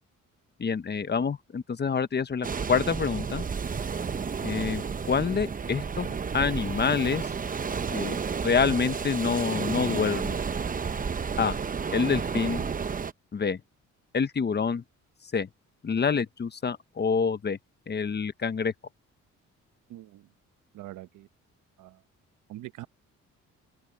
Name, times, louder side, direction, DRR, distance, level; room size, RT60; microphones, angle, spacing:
voice 1, 0.6-3.4 4.4-7.3 7.9-8.2 8.4-10.4 11.4-11.6 11.9-12.6 13.3-13.6 14.1-14.8 15.3-15.5 15.8-17.6 17.9-18.7, left 5 dB, 35° left, 1.2 m, -27 dB
sound 1, 2.4-13.1, right 6 dB, 30° right, 0.8 m, -31 dB
voice 2, 19.9-20.3 20.7-21.3 21.8-22.0 22.5-22.9, right 15 dB, 85° right, 1.1 m, -43 dB
open air
cardioid pair, 90°, 30 cm